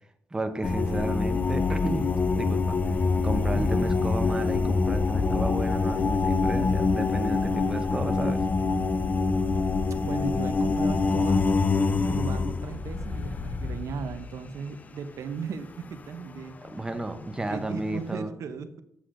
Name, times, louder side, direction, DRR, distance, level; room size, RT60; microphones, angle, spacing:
voice 1, 0.3-2.8 3.2-8.4 16.6-18.3, right 2 dB, 15° right, 6 dB, 0.6 m, -33 dB
sound 1, 0.6-14.5 16.3-16.4 17.0-17.4 17.7-18.0, left 4 dB, 30° left, 0.4 m, -25 dB
voice 2, 3.5-3.9 10.0-11.5 12.1-16.6 16.9-17.0 17.5-18.8, right 6 dB, 65° right, 10 dB, 0.5 m, -37 dB
8.3 x 7.7 x 2.5 m, 0.76 s
cardioid pair, 120°, 6 cm